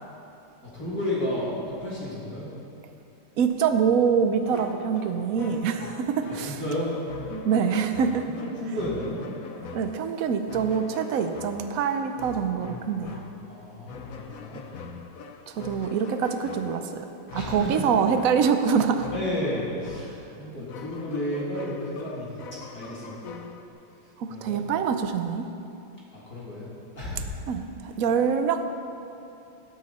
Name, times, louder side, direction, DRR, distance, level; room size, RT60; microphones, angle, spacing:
voice 1, 0.7-2.5 6.4-7.0 8.3-9.3 13.5-14.7 17.3-17.9 19.1-23.3 24.0-24.6 26.1-26.7 27.0-27.3, left 1 dB, 40° left, -7 dB, 3.3 m, -32 dB
voice 2, 3.4-6.6 7.3-8.3 9.7-13.2 15.5-17.1 17.3-19.1 24.2-25.4 27.5-28.6, right 6 dB, 75° right, 8 dB, 0.7 m, -25 dB
sound 1, 4.4-23.7, left 5 dB, 65° left, 0.9 m, -43 dB
17.0 x 12.5 x 4.2 m, 2.8 s
omnidirectional pair, 2.4 m